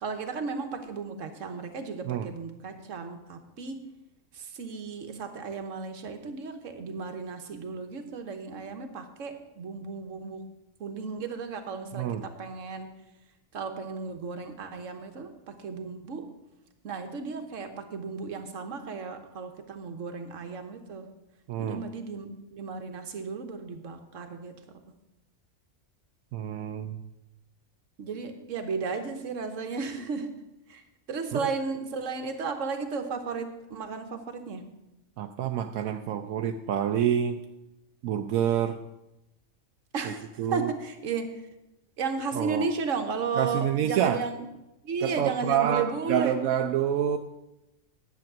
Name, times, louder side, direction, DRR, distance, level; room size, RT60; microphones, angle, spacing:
voice 1, 0.0-3.8 4.3-10.5 10.8-12.9 13.5-16.3 16.8-21.1 21.6-24.6 28.0-30.4 30.7-30.8 31.1-34.7 39.9-41.4 42.0-44.4 44.8-46.3, right 5 dB, 70° right, 6 dB, 1.4 m, -34 dB
voice 2, 11.9-12.2 21.5-21.8 26.3-27.0 31.3-31.5 35.2-37.4 38.0-38.8 40.0-40.7 42.3-42.7 43.4-44.2 45.0-47.2, right 9 dB, 85° right, 6 dB, 1.0 m, -27 dB
10.5 x 7.8 x 6.0 m, 0.94 s
omnidirectional pair, 1.4 m